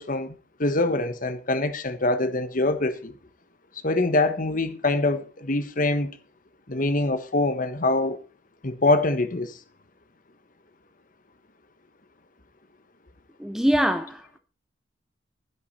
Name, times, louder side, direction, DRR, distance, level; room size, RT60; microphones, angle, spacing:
voice 1, 0.0-3.1 3.8-6.2 6.7-8.2 8.6-9.6, left 2 dB, 45° left, 1.3 m, -24 dB
voice 2, 13.4-14.4, equal, ahead, 0.6 m, -24 dB
12.0 x 10.5 x 4.3 m
head